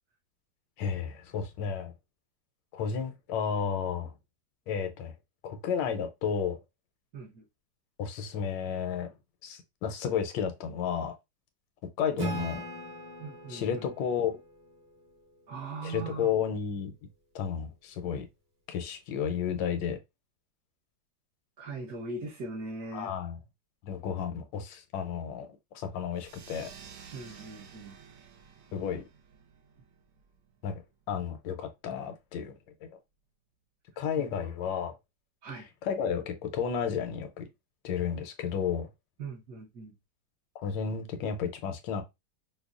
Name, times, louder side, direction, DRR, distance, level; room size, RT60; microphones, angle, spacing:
voice 1, 0.8-1.9 2.7-4.1 4.7-5.1 5.4-6.6 8.0-9.1 9.4-11.1 12.0-12.7 13.5-14.3 15.8-16.9 17.3-18.2 18.7-20.0 22.9-23.4 23.8-25.5 25.7-26.7 28.7-29.0 30.6-30.8 31.1-32.5 32.8-32.9 34.0-34.9 35.8-37.4 37.8-38.9 40.6-42.0, left 7 dB, 85° left, 1.3 m, -32 dB
voice 2, 7.1-7.4 13.2-13.9 15.5-16.3 21.6-23.1 27.1-28.0 35.4-35.7 39.2-39.9, right 3 dB, 60° right, 1.4 m, -40 dB
Acoustic guitar / Strum, 12.2-15.6, equal, 35° right, 0.9 m, -39 dB
sound 1, 26.1-31.2, right 6 dB, 80° right, 1.3 m, -52 dB
5.2 x 2.1 x 2.3 m
omnidirectional pair, 1.9 m